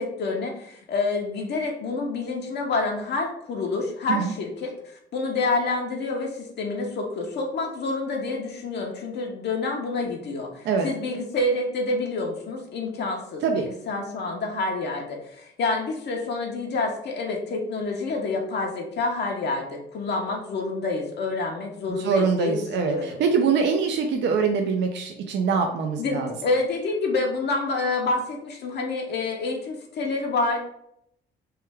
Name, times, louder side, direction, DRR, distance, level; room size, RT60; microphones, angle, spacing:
voice 1, 0.0-23.2 26.0-30.6, left 3 dB, 60° left, 1 dB, 0.6 m, -28 dB
voice 2, 22.0-22.9 23.2-26.3, right 5 dB, 65° right, 4 dB, 0.4 m, -23 dB
3.1 x 2.2 x 3.3 m, 0.75 s
cardioid pair, 90°, 20 cm